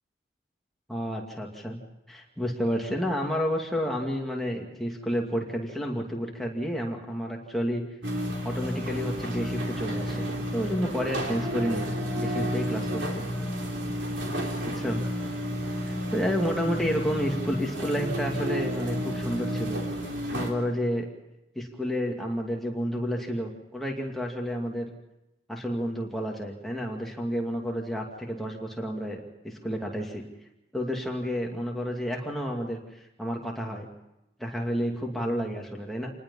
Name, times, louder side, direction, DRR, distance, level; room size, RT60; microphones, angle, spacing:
voice 1, 0.9-1.8 2.1-7.8 8.4-13.2 14.7-15.0 15.8-19.8 20.3-21.1 21.6-24.9 25.5-30.2 30.7-32.8 33.2-33.9 34.4-36.1, equal, ahead, -1 dB, 2.5 m, -30 dB
sound 1, 8.0-20.5, equal, 85° right, 3.7 m, -31 dB
27.5 x 19.5 x 5.6 m, 0.89 s
head